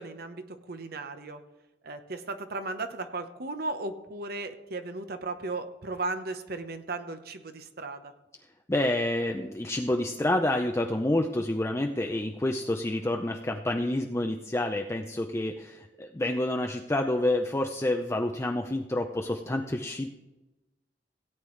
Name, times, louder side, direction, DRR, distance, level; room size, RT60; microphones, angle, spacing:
voice 1, 0.0-1.4 1.8-8.1, right 3 dB, 60° right, 8 dB, 1.0 m, -36 dB
voice 2, 8.7-20.1, left 1 dB, 15° left, 3 dB, 0.5 m, -28 dB
17.0 x 8.8 x 3.2 m, 1.0 s
head